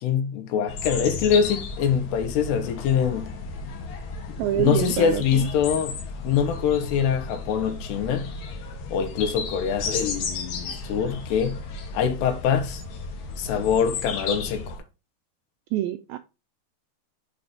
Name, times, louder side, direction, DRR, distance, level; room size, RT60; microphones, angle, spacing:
voice 1, 0.0-3.3 4.3-6.0 6.2-8.3 8.9-11.6 11.9-12.8 13.4-14.8, left 7 dB, 90° left, 3.1 m, -24 dB
sound 1, 0.7-14.8, left 4 dB, 65° left, 2.7 m, -34 dB
voice 2, 4.4-5.5 15.7-16.2, right 13 dB, 85° right, 2.1 m, -26 dB
6.7 x 4.3 x 5.1 m
omnidirectional pair, 4.7 m